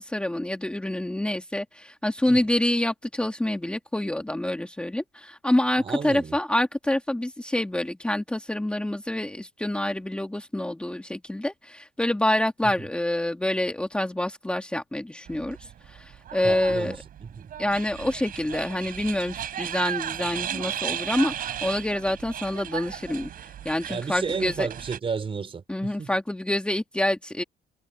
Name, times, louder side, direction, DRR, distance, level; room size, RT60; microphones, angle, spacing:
voice 1, 0.0-17.0 17.6-24.7 25.7-27.4, left 1 dB, 5° left, 1.7 m, -27 dB
voice 2, 5.8-6.4 16.4-17.5 23.9-26.1, right 5 dB, 30° right, 4.5 m, -32 dB
sound 1, 15.3-25.0, right 10 dB, 55° right, 6.9 m, -35 dB
cardioid pair, 110°, 17 cm